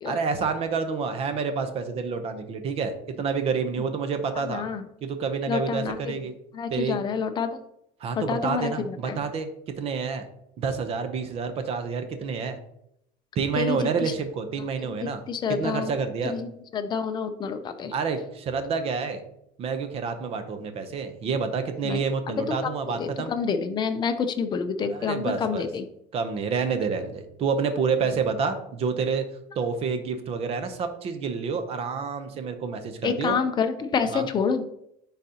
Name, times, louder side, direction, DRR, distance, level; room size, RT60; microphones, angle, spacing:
voice 1, 0.0-4.6 5.0-6.4 6.7-7.0 8.0-9.5 9.8-10.2 10.6-12.6 13.4-15.2 15.5-16.3 17.9-19.2 19.6-23.3 24.9-25.7 26.1-29.2 29.6-33.4 34.1-34.3, right 5 dB, 35° right, 8 dB, 0.7 m, -28 dB
voice 2, 4.4-4.8 5.5-6.2 6.5-7.6 8.2-9.2 13.6-14.1 15.0-15.9 16.2-17.9 21.8-22.0 22.3-22.4 22.6-22.7 23.0-25.8 33.0-34.6, left 6 dB, 25° left, 8 dB, 0.5 m, -28 dB
9.9 x 4.0 x 2.8 m, 0.77 s
cardioid pair, 165°, 18 cm